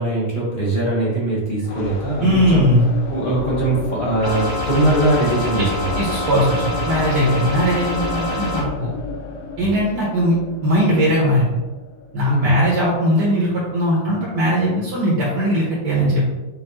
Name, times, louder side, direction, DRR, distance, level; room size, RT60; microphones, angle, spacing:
voice 1, 0.0-2.7 3.1-6.0 9.6-9.7 12.2-12.5, right 2 dB, 30° left, -7 dB, 1.4 m, -21 dB
sound 1, 1.6-13.4, left 3 dB, 70° left, 0.9 m, -31 dB
voice 2, 2.2-2.8 5.6-5.7 6.0-8.9 9.6-10.4 10.6-11.6 12.1-16.2, equal, 75° right, -6 dB, 1.7 m, -19 dB
sound 2, 4.2-8.6, left 1 dB, 20° right, 1.1 m, -26 dB
5.5 x 2.8 x 3.0 m, 1.2 s
omnidirectional pair, 1.9 m